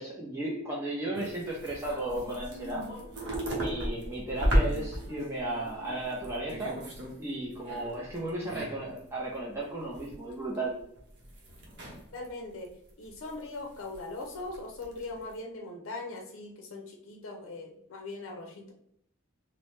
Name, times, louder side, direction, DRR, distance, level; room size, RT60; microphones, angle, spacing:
voice 1, 0.0-2.9 3.5-6.8 7.2-10.7, right 2 dB, 15° right, -5 dB, 0.5 m, -35 dB
sound 1, 1.1-7.2 7.4-9.0 9.3-9.4 9.8-10.3 10.5-12.3 12.6-13.3 13.7-14.6 14.8-15.3, equal, 60° right, 0.7 m, -34 dB
voice 2, 12.1-12.7 13.0-18.7, left 2 dB, 90° left, 2 dB, 0.5 m, -40 dB
2.7 x 2.0 x 3.2 m, 0.71 s
head